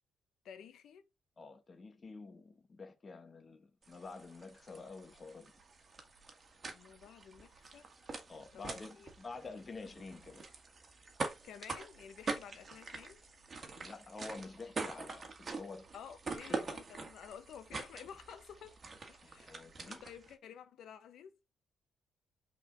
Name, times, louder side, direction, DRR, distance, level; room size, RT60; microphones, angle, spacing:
voice 1, 0.4-1.0 6.7-7.9 8.5-9.1 11.3-13.2 13.7-13.9 15.9-18.8 19.1-21.4, left 8 dB, 75° left, 1.1 m, -52 dB
voice 2, 1.4-5.5 8.3-10.4 13.7-15.9 16.5-16.7 19.2-20.0, left 3 dB, 35° left, 1.4 m, -49 dB
sound 1, 3.8-20.3, right 4 dB, 35° right, 1.8 m, -45 dB
5.5 x 4.3 x 4.1 m
cardioid pair, 90°, 0 cm